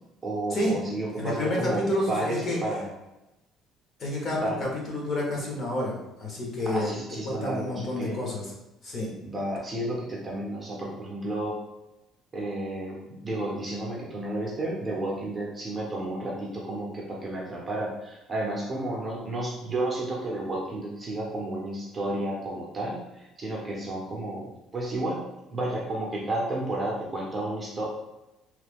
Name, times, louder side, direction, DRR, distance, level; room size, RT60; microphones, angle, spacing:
voice 1, 0.2-2.9 4.4-4.6 6.7-8.2 9.2-11.6 12.3-25.2 25.5-27.8, right 1 dB, 20° right, -3 dB, 0.6 m, -32 dB
voice 2, 1.2-2.6 4.0-6.9 7.2-8.5 8.8-9.1, left 1 dB, 35° left, -2 dB, 0.8 m, -29 dB
3.0 x 2.2 x 3.4 m, 0.96 s
cardioid pair, 165°, 0 cm